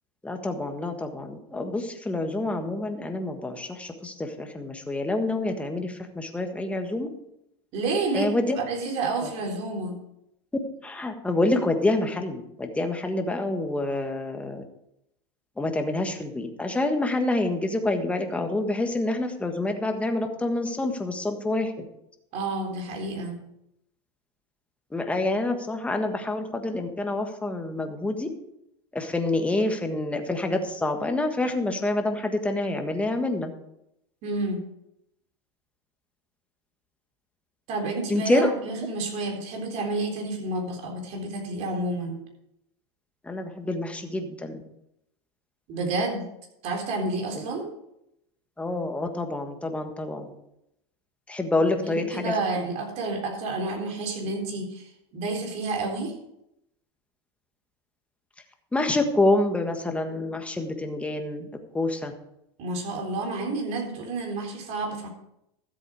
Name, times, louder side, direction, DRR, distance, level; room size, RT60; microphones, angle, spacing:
voice 1, 0.2-7.1 8.1-8.6 9.2-9.3 10.8-14.6 15.6-21.9 24.9-28.3 28.9-33.5 38.1-38.5 43.2-44.6 47.3-47.4 48.6-50.3 51.3-52.3 58.7-61.5 61.7-62.1, left 2 dB, 10° left, 5 dB, 1.5 m, -27 dB
voice 2, 7.7-10.0 22.3-23.4 34.2-34.6 37.7-42.2 45.7-46.3 46.6-47.7 51.6-56.1 62.6-65.1, right 3 dB, 50° right, 2 dB, 3.8 m, -30 dB
13.5 x 7.9 x 4.8 m, 0.81 s
supercardioid pair, 120°, 15 cm